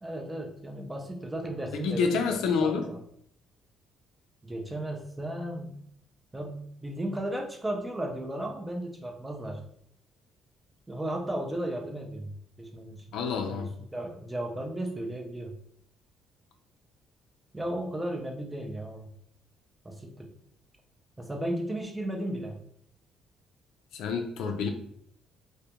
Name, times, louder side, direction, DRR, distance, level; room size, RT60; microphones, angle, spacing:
voice 1, 0.0-3.0 4.4-5.7 6.3-9.6 10.9-13.2 13.5-15.6 17.5-19.1 19.8-20.3 21.2-22.6, right 1 dB, 10° right, 2 dB, 0.4 m, -35 dB
voice 2, 1.7-2.9 13.1-13.7 23.9-24.7, left 5 dB, 80° left, 5 dB, 0.4 m, -28 dB
2.3 x 2.1 x 2.8 m, 0.67 s
cardioid pair, 150°, 0 cm